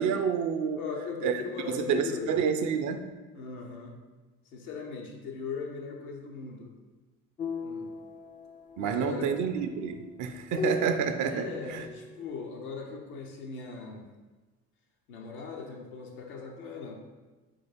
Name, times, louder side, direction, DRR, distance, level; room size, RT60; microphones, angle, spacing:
voice 1, 0.0-0.8 1.2-1.4 1.7-3.1 8.8-11.9, right 6 dB, 45° right, 8 dB, 0.5 m, -29 dB
voice 2, 0.7-2.3 3.3-4.0 4.5-6.7 7.6-7.9 8.8-9.3 11.3-14.1 15.1-16.9, left 5 dB, 80° left, 0 dB, 0.8 m, -39 dB
sound 1, 7.4-12.4, left 3 dB, 20° left, 0.3 m, -38 dB
3.9 x 3.8 x 3.3 m, 1.2 s
hypercardioid pair, 60°, 43 cm